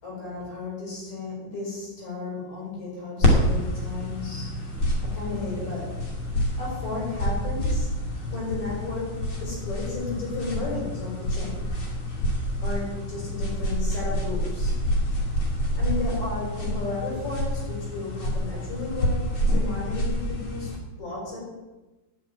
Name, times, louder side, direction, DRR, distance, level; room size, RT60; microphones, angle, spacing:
voice 1, 0.0-4.8 5.0-6.1 6.6-11.8 12.6-14.8 15.8-21.4, left 3 dB, 65° left, -4 dB, 7.1 m, -34 dB
sound 1, 3.2-20.8, equal, 45° left, 3.1 m, -27 dB
11.5 x 7.6 x 8.9 m, 1.1 s
omnidirectional pair, 3.5 m